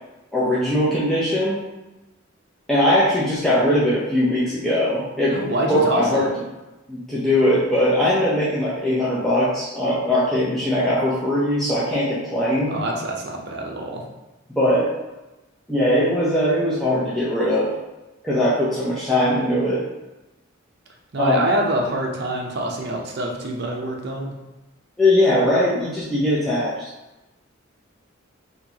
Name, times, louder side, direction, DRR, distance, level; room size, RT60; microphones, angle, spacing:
voice 1, 0.3-1.6 2.7-5.4 5.7-6.3 6.9-12.8 14.5-14.9 15.7-17.7 18.2-19.8 21.2-21.4 25.0-26.7, left 1 dB, ahead, -10 dB, 0.6 m, -20 dB
voice 2, 5.3-6.3 12.7-14.0 21.1-24.3, right 1 dB, 55° right, 0 dB, 0.7 m, -25 dB
4.4 x 2.8 x 2.8 m, 1.0 s
head